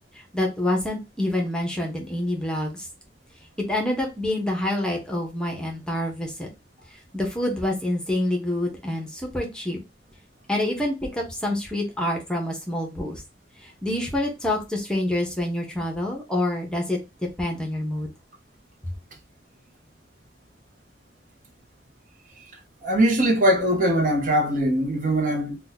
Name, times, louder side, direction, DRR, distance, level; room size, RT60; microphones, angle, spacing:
voice 1, 0.1-2.9 3.7-6.5 6.9-9.8 10.5-13.2 13.6-18.1, left 1 dB, 5° left, 0.8 m, -27 dB
voice 2, 22.8-25.6, equal, 45° right, 0.8 m, -21 dB
2.7 x 2.3 x 4.0 m
head